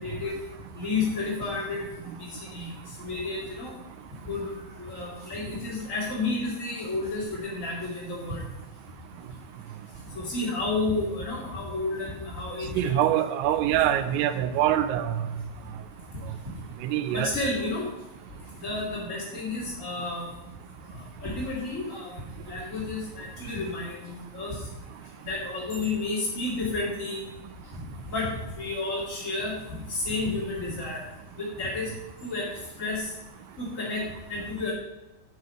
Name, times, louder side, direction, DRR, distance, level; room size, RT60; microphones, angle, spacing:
voice 1, 0.0-0.3 0.7-3.7 4.3-8.4 10.1-13.2 17.1-17.9 18.6-20.3 20.9-22.1 22.5-24.6 25.2-27.2 27.7-29.5 29.9-31.0 31.4-31.9 32.2-32.5 32.8-33.1 33.6-34.0 34.3-34.7, left 3 dB, 45° left, -5 dB, 0.9 m, -31 dB
voice 2, 12.8-15.3 16.8-17.3, right 11 dB, 80° right, 10 dB, 3.3 m, -24 dB
8.1 x 7.7 x 7.8 m, 0.99 s
omnidirectional pair, 5.9 m